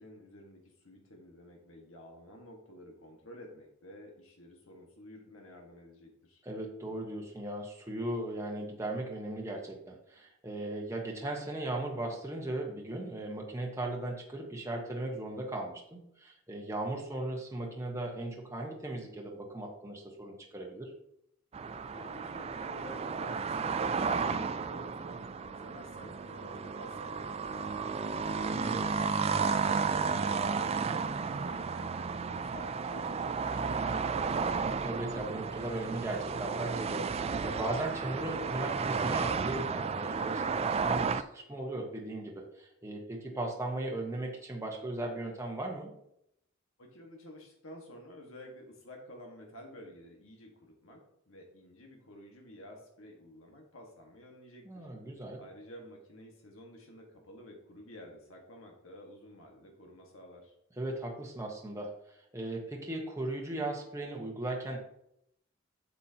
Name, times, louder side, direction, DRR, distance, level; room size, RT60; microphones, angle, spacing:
voice 1, 0.0-6.4 21.9-28.5 29.0-34.1 46.8-54.9 55.4-60.5, equal, 70° left, 1 dB, 1.5 m, -51 dB
voice 2, 6.4-20.9 28.5-29.4 34.5-45.9 54.6-55.4 60.8-64.8, right 1 dB, 15° right, -1 dB, 1.1 m, -37 dB
sound 1, 21.5-41.2, right 5 dB, 30° right, 0.3 m, -33 dB
8.3 x 7.2 x 2.8 m, 0.76 s
head